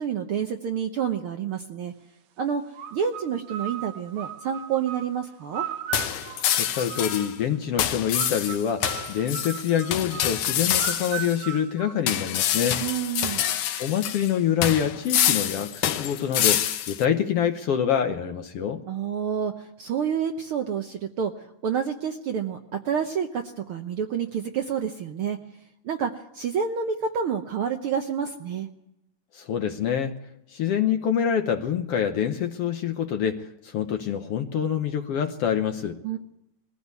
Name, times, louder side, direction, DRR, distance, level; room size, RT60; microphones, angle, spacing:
voice 1, 0.0-1.9 2.4-5.7 12.8-13.4 18.9-25.4 25.8-28.7 36.0-36.2, right 7 dB, 65° right, 5 dB, 1.4 m, -29 dB
sound 1, 2.7-7.5 8.1-12.6, right 11 dB, 90° right, 2.4 m, -38 dB
sound 2, 5.9-7.3 7.8-11.4 12.1-14.3 14.6-17.0, left 10 dB, 90° left, 2.5 m, -26 dB
voice 2, 6.6-12.8 13.8-18.8 29.3-30.2 30.5-36.0, left 8 dB, 65° left, 7 dB, 1.6 m, -26 dB
21.0 x 15.0 x 8.3 m, 0.86 s
omnidirectional pair, 3.4 m